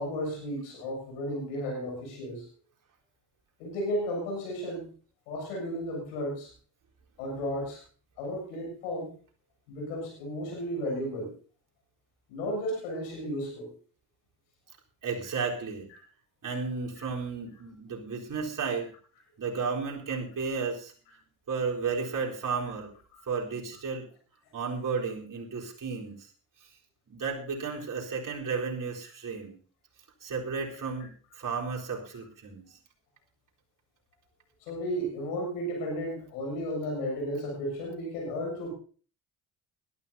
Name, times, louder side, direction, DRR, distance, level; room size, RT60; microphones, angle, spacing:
voice 1, 0.0-2.5 3.6-4.9 5.3-6.5 7.2-7.8 8.2-9.1 9.7-11.3 12.3-13.7 34.6-38.7, equal, 75° left, -1 dB, 7.4 m, -33 dB
voice 2, 15.0-15.9 16.4-18.9 19.4-20.9 21.5-22.9 23.3-24.0 24.5-26.3 26.6-26.7 27.1-29.6 30.2-32.8, right 5 dB, 40° right, -2 dB, 4.2 m, -33 dB
21.0 x 13.0 x 2.8 m, 0.42 s
hypercardioid pair, 55°, 46 cm